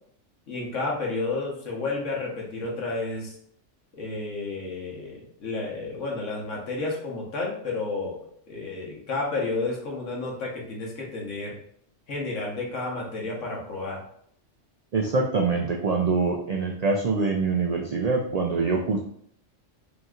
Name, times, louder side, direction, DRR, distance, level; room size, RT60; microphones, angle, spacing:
voice 1, 0.5-3.3 3.9-8.2 8.5-11.5 12.1-14.0, left 3 dB, 80° left, -2 dB, 1.4 m, -31 dB
voice 2, 14.9-19.0, right 4 dB, 80° right, 1 dB, 0.3 m, -24 dB
5.3 x 2.9 x 2.4 m, 0.66 s
omnidirectional pair, 1.3 m